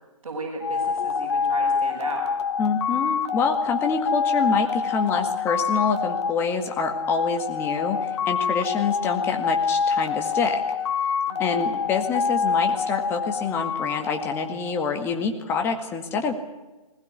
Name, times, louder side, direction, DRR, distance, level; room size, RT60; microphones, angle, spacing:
voice 1, 0.2-2.3 11.3-11.8, right 3 dB, 55° right, -4 dB, 7.3 m, -35 dB
sound 1, 0.6-15.1, left 6 dB, 50° left, 2.3 m, -26 dB
voice 2, 2.6-10.6 11.4-16.3, left 5 dB, 10° left, 5 dB, 1.9 m, -26 dB
21.0 x 19.5 x 9.8 m, 1.1 s
hypercardioid pair, 150°, 18 cm